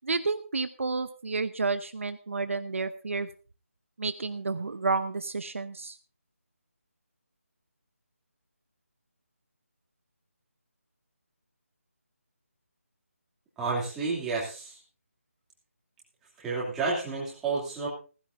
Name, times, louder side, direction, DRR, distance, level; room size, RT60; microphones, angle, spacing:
voice 1, 0.0-3.3 4.0-6.0, right 4 dB, 60° right, 10 dB, 0.9 m, -30 dB
voice 2, 13.6-14.8 16.4-17.9, right 4 dB, 5° right, -6 dB, 2.8 m, -30 dB
16.5 x 15.0 x 2.6 m, 0.36 s
figure-of-eight pair, 170°, 8 cm